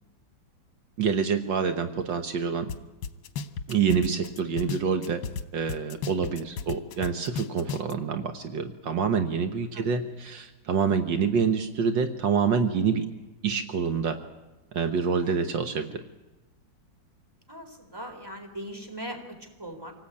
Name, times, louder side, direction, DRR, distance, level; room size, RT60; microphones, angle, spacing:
voice 1, 1.0-2.7 3.7-5.2 5.5-13.1 13.4-14.2 14.7-16.0, right 6 dB, 70° right, 7 dB, 1.8 m, -26 dB
sound 1, 2.7-2.8 3.0-5.4 5.7-7.9, left 5 dB, 80° left, 1.8 m, -33 dB
voice 2, 17.5-19.9, equal, 10° right, 4 dB, 3.7 m, -40 dB
26.0 x 18.5 x 8.6 m, 1.1 s
omnidirectional pair, 2.1 m